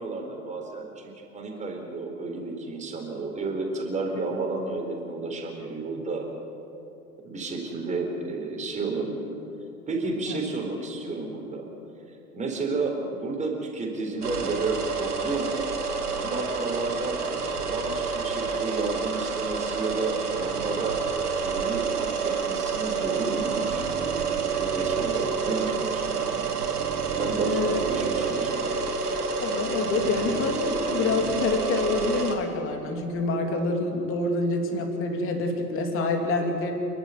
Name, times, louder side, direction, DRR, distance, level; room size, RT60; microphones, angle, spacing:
voice 1, 0.0-6.3 7.2-9.4 9.9-11.7 12.3-15.5 16.1-23.9 24.6-26.7 27.2-28.7, right 3 dB, 15° right, 1 dB, 4.0 m, -32 dB
sound 1, 14.2-32.3, right 5 dB, 70° right, 3.1 m, -28 dB
voice 2, 27.5-27.8 29.4-36.7, left 3 dB, 25° left, 4 dB, 3.1 m, -27 dB
28.0 x 11.5 x 9.4 m, 2.7 s
figure-of-eight pair, 100°, 47 cm